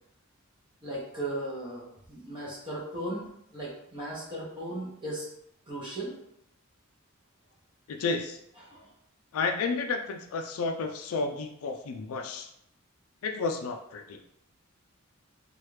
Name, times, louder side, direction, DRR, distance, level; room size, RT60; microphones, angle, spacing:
voice 1, 0.8-5.2 5.7-6.1 8.7-8.8, right 1 dB, 25° right, -7 dB, 0.8 m, -37 dB
voice 2, 7.9-8.4 9.3-12.5 13.2-14.2, left 4 dB, 85° left, 4 dB, 0.4 m, -31 dB
3.2 x 2.4 x 3.1 m, 0.76 s
head